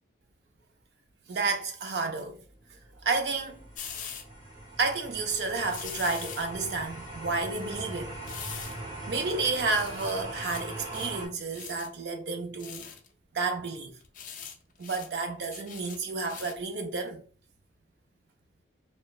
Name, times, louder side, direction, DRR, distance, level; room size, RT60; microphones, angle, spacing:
voice 1, 1.3-2.4 3.0-3.7 4.8-8.2 9.1-12.9 13.3-13.9 14.8-17.2, right 3 dB, 65° right, 0.5 m, -31 dB
sound 1, 2.4-11.3, right 2 dB, 25° right, 0.7 m, -41 dB
sound 2, 3.7-4.2 5.7-6.5 8.2-8.8 9.2-9.3 9.7-10.7 10.9-11.2 11.5-11.9 12.6-13.1 14.0-14.5 14.8-15.1 15.5-16.6 17.1-17.2, left 8 dB, 45° left, 0.4 m, -42 dB
3.0 x 2.2 x 2.3 m
head